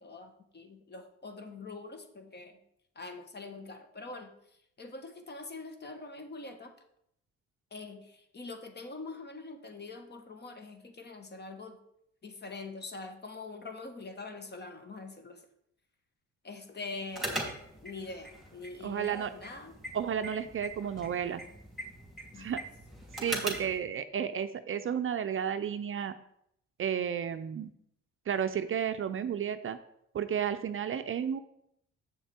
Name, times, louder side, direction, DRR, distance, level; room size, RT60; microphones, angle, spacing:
voice 1, 0.0-2.6 2.9-4.3 4.8-6.7 7.7-11.8 12.2-15.4 16.4-19.7 22.3-22.5, left 3 dB, 35° left, 7 dB, 1.3 m, -44 dB
sound 1, 17.1-23.8, right 1 dB, ahead, 2.7 m, -41 dB
voice 2, 18.8-19.3 19.9-21.4 22.4-22.6 23.2-26.1 26.8-27.7 28.3-29.8 30.1-31.4, right 8 dB, 45° right, 10 dB, 0.5 m, -32 dB
7.5 x 6.8 x 4.3 m, 0.74 s
cardioid pair, 90°, 30 cm